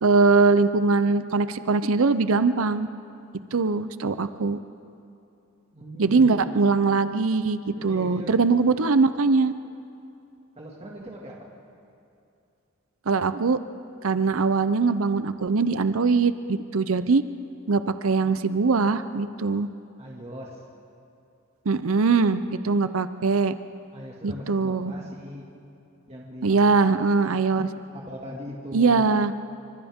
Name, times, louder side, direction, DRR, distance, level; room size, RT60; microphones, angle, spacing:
voice 1, 0.0-2.9 3.5-4.6 6.0-9.5 13.1-13.6 14.0-17.2 17.7-19.7 21.7-23.5 24.2-24.9 26.4-27.7 28.7-29.3, right 4 dB, 75° right, 12 dB, 0.7 m, -21 dB
voice 2, 5.7-6.4 7.7-8.4 10.6-11.5 20.0-20.6 23.9-25.5 26.1-27.7 27.9-29.1, equal, 30° right, -3 dB, 2.1 m, -40 dB
28.5 x 25.5 x 3.7 m, 2.7 s
head